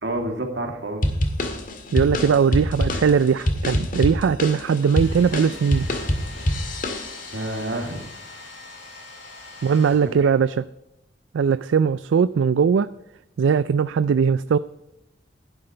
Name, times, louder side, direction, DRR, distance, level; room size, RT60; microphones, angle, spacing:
voice 1, 0.0-1.0 7.3-8.0 10.0-10.3, right 1 dB, 65° right, 3 dB, 2.3 m, -29 dB
sound 1, 1.0-7.5, left 1 dB, 45° left, 1.8 m, -25 dB
voice 2, 1.9-5.9 9.6-10.7 11.3-12.9 13.4-14.6, right 6 dB, 85° right, 14 dB, 0.4 m, -20 dB
Domestic sounds home sounds, 4.7-10.6, left 3 dB, 75° left, 5.1 m, -42 dB
11.5 x 11.0 x 4.5 m, 0.86 s
head